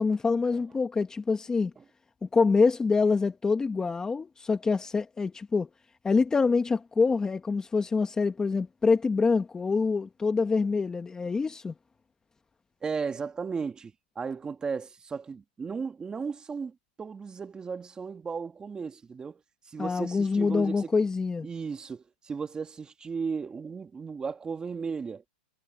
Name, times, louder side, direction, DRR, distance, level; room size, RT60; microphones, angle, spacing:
voice 1, 0.0-1.7 2.2-5.7 6.0-11.7 19.8-21.5, left 4 dB, 10° left, 1.2 m, -25 dB
voice 2, 12.8-19.4 19.7-20.9 21.4-25.2, right 5 dB, 15° right, 2.2 m, -35 dB
hypercardioid pair, 135°, 5 cm